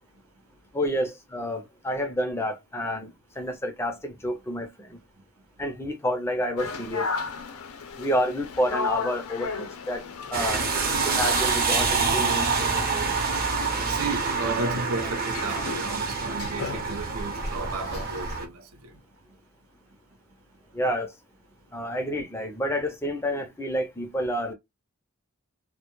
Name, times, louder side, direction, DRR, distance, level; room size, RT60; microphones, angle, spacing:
voice 1, 0.7-5.0 5.6-7.1 8.0-10.0 10.3-10.6 11.0-13.2 20.7-21.1 21.7-24.5, equal, 10° left, 0.5 m, -29 dB
sound 1, 6.6-18.4, left 4 dB, 90° left, 0.5 m, -36 dB
sound 2, 10.3-18.4, right 4 dB, 45° right, 0.7 m, -26 dB
voice 2, 13.9-18.9, right 3 dB, 80° right, 0.6 m, -33 dB
2.2 x 2.1 x 2.9 m
head